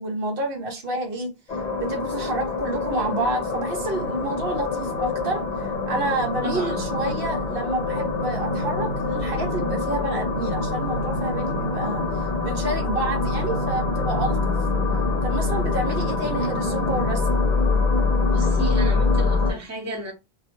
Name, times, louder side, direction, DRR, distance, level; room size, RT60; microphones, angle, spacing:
voice 1, 0.0-12.0 12.4-14.5 15.2-17.4, right 2 dB, 65° right, 0.8 m, -29 dB
sound 1, 1.5-19.5, left 3 dB, 45° left, 0.9 m, -25 dB
voice 2, 6.4-6.9 18.2-20.1, right 1 dB, 20° right, 0.7 m, -32 dB
2.3 x 2.1 x 2.9 m
omnidirectional pair, 1.1 m